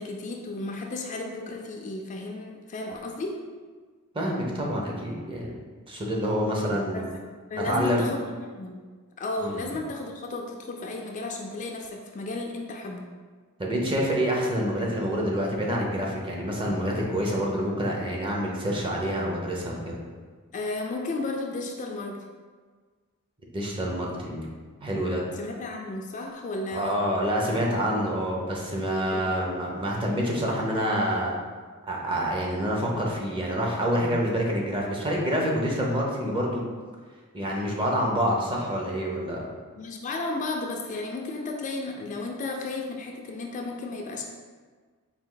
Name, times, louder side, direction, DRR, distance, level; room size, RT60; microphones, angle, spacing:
voice 1, 0.0-3.4 6.7-7.1 7.5-8.8 9.2-13.1 20.5-22.2 25.3-27.0 29.1-29.3 39.7-44.2, left 2 dB, 35° left, 1 dB, 0.3 m, -33 dB
voice 2, 4.1-5.5 5.9-7.0 7.7-8.0 9.4-9.7 13.6-20.0 23.5-24.5 24.8-25.2 26.7-31.3 31.9-36.7 37.3-39.5, equal, 25° right, -2 dB, 0.7 m, -27 dB
4.2 x 2.7 x 3.8 m, 1.5 s
head